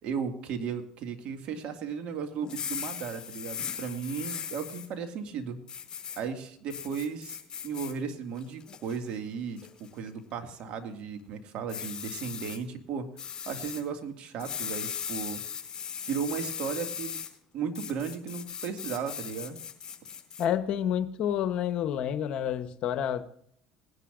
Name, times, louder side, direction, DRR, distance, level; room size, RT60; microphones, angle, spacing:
voice 1, 0.0-5.6 6.2-7.4 7.6-9.6 9.9-13.1 13.5-15.4 16.0-17.2 17.5-19.6, right 6 dB, 60° right, 2.0 m, -35 dB
sound 1, 2.4-4.9 5.7-6.2 6.7-7.9 8.4-9.0 9.6-9.9 11.7-12.6 13.2-13.8 14.4-17.3 17.7-20.5, left 8 dB, 40° left, 4.3 m, -38 dB
voice 2, 20.4-23.2, left 9 dB, 60° left, 0.9 m, -29 dB
20.5 x 11.0 x 2.5 m
supercardioid pair, 80°, 2 cm